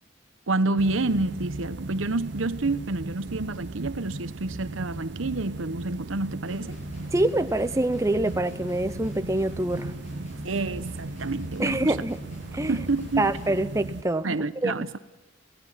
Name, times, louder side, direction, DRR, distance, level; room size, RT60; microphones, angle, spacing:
voice 1, 0.5-6.8 10.4-12.0 12.7-13.4 14.2-15.0, right 2 dB, 90° right, 1.0 m, -28 dB
sound 1, 0.8-14.0, right 2 dB, 60° right, 0.7 m, -37 dB
Guitar, 6.5-13.6, left 1 dB, 40° left, 7.6 m, -45 dB
voice 2, 7.1-9.9 11.6-12.2 12.5-12.7 13.2-14.3 14.6-14.7, right 1 dB, 15° right, 0.6 m, -25 dB
28.5 x 17.0 x 5.7 m
head